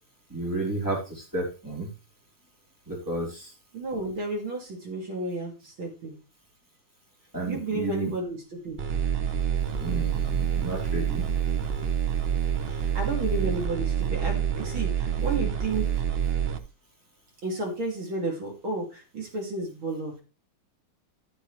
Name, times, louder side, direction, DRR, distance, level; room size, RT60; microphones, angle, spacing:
voice 1, 0.3-1.9 2.9-3.5 7.3-8.1 9.8-11.3, right 2 dB, 10° right, -3 dB, 3.6 m, -32 dB
voice 2, 3.7-6.2 7.4-8.8 12.7-15.9 17.4-20.2, right 2 dB, 80° right, -1 dB, 3.6 m, -32 dB
sound 1, 8.8-16.6, right 9 dB, 55° right, 0.7 m, -27 dB
12.0 x 7.4 x 3.3 m, 0.30 s
omnidirectional pair, 2.2 m